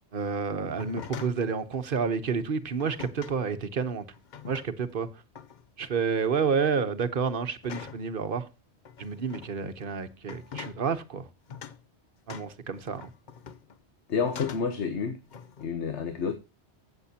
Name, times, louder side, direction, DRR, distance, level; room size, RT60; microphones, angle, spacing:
voice 1, 0.1-4.1 4.4-5.1 5.8-8.5 9.0-11.3 12.3-13.1, right 5 dB, 55° right, 1.2 m, -29 dB
sound 1, 0.7-1.5 2.8-3.4 4.1-4.9 5.3-5.7 6.1-6.5 7.6-8.1 8.8-9.5 10.2-10.8 11.5-11.8 12.3-13.8 14.2-14.8 15.3-15.7, left 7 dB, 50° left, 0.7 m, -43 dB
voice 2, 14.1-15.2 15.6-16.3, left 6 dB, 85° left, 1.4 m, -29 dB
15.0 x 7.2 x 2.8 m
omnidirectional pair, 1.1 m